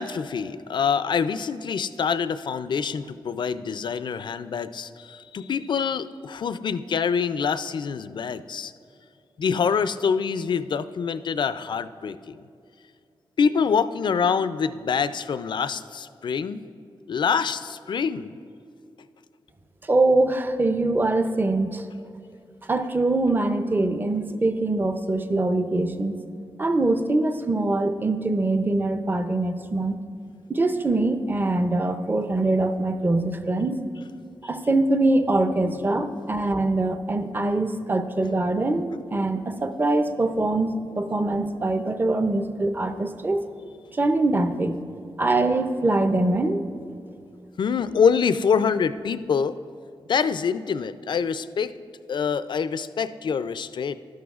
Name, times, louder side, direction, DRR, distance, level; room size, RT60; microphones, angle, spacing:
voice 1, 0.0-8.7 9.4-12.4 13.4-16.6 17.1-18.3 33.2-33.3 35.6-36.2 47.6-49.6 50.1-51.7 52.1-54.0, left 6 dB, 60° left, 13 dB, 0.3 m, -25 dB
voice 2, 19.9-21.8 22.7-26.2 26.6-30.0 30.5-33.7 34.4-43.4 43.9-44.8 45.2-46.6, right 2 dB, 20° right, 9 dB, 0.5 m, -23 dB
12.0 x 11.0 x 2.4 m, 2.5 s
wide cardioid pair, 105°, 9 cm